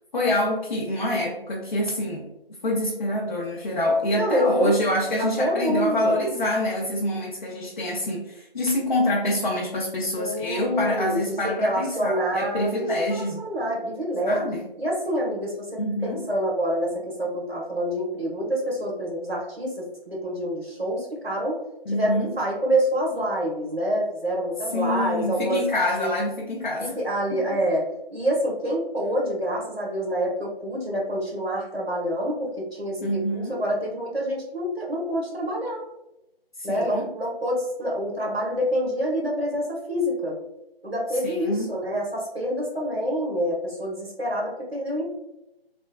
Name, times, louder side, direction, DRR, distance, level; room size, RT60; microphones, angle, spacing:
voice 1, 0.1-2.3 2.6-13.5 14.3-14.6 15.8-16.3 21.9-22.3 24.7-27.0 27.3-27.4 33.0-33.6 36.6-37.1 41.2-41.7, left 1 dB, 50° left, -3 dB, 0.5 m, -26 dB
voice 2, 4.1-4.7 5.2-6.2 10.2-14.4 14.8-21.6 21.9-25.6 26.0-26.1 26.8-27.9 28.1-35.8 36.6-40.4 40.8-45.1, equal, 85° right, -3 dB, 1.2 m, -27 dB
3.2 x 2.1 x 2.2 m, 0.92 s
figure-of-eight pair, 155°, 30 cm